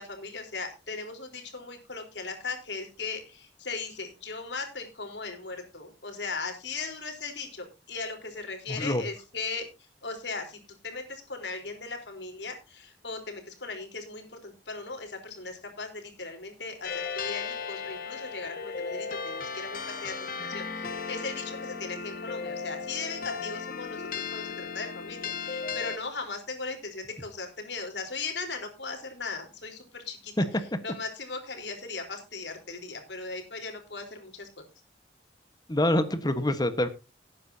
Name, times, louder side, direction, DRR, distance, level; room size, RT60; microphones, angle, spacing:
voice 1, 0.0-9.6 10.0-10.6 10.8-30.3 30.8-34.5, left 4 dB, 85° left, 4 dB, 4.0 m, -38 dB
voice 2, 8.7-9.0 30.4-30.5 35.7-36.9, left 1 dB, 25° left, 10 dB, 1.3 m, -25 dB
sound 1, 16.8-26.0, left 5 dB, 55° left, 1.7 m, -36 dB
18.5 x 9.6 x 2.8 m, 0.28 s
head